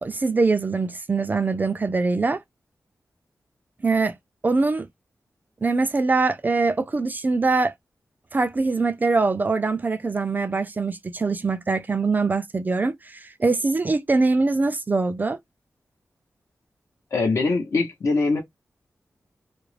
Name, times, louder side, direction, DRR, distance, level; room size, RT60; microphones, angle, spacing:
voice 1, 0.0-2.4 3.8-4.2 4.4-4.9 5.6-7.7 8.3-15.4, right 3 dB, 30° right, 0.3 m, -23 dB
voice 2, 17.1-18.4, left 3 dB, 60° left, 0.7 m, -22 dB
2.4 x 2.0 x 3.1 m
wide cardioid pair, 125°, 6 cm